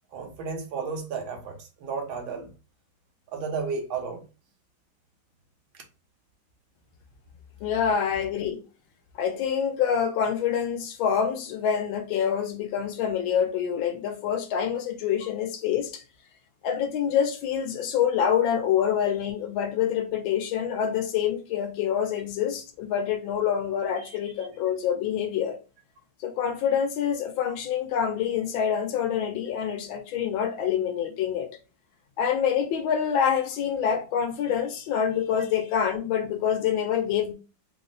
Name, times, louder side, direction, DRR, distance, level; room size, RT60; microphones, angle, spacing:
voice 1, 0.1-2.5 3.3-4.3 24.0-24.2, right 5 dB, 80° right, 1.7 m, -33 dB
voice 2, 7.6-8.6 9.2-16.0 16.6-25.6 26.2-31.5 32.2-37.3, left 8 dB, 85° left, 1.5 m, -26 dB
4.0 x 2.0 x 3.8 m
omnidirectional pair, 2.2 m